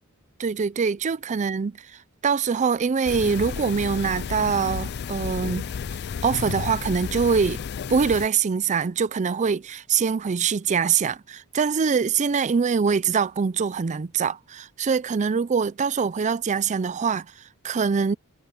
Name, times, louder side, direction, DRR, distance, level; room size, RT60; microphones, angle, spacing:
voice 1, 0.4-1.7 2.2-5.7 6.2-7.6 7.9-18.2, right 6 dB, 35° right, 0.4 m, -24 dB
sound 1, 3.1-8.3, left 6 dB, 50° left, 0.4 m, -32 dB
head